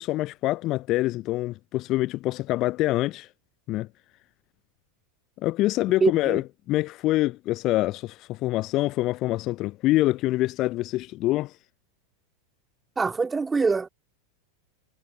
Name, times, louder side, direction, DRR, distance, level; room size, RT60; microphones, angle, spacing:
voice 1, 0.0-3.3 3.7-3.9 5.4-11.5, left 17 dB, 40° left, 0.4 m, -25 dB
voice 2, 6.0-6.4 13.0-13.9, right 4 dB, 15° right, 2.9 m, -24 dB
figure-of-eight pair, 85°, 0 cm